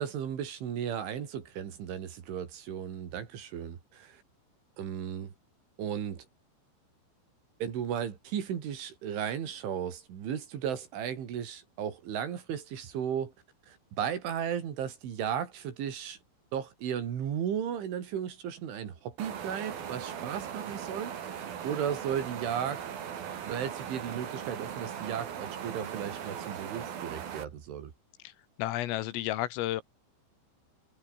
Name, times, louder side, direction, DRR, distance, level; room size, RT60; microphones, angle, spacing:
voice 1, 0.0-4.2 4.8-5.3 5.8-6.3 7.6-13.3 13.7-16.2 16.5-22.8 23.4-27.9, right 8 dB, 65° right, 5.5 m, -35 dB
sound 1, 19.2-27.4, right 8 dB, 50° right, 4.0 m, -39 dB
voice 2, 28.6-29.8, left 14 dB, 80° left, 4.1 m, -31 dB
omnidirectional pair, 6.0 m